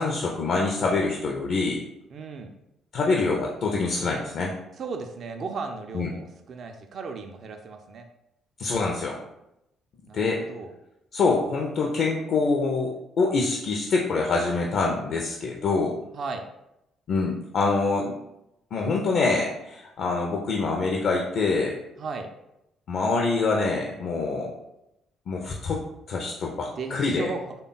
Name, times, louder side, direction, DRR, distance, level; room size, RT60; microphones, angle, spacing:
voice 1, 0.0-1.8 2.9-4.5 5.9-6.1 8.6-9.2 10.1-10.4 11.1-16.0 17.1-18.1 18.7-21.8 22.9-24.5 25.3-25.8 26.1-27.3, left 3 dB, 55° left, 0 dB, 0.4 m, -25 dB
voice 2, 2.1-2.5 4.8-8.1 10.1-10.7 16.1-16.4 22.0-22.3 26.8-27.4, right 4 dB, 50° right, 5 dB, 0.3 m, -35 dB
3.3 x 2.2 x 3.8 m, 0.86 s
figure-of-eight pair, 45°, 0 cm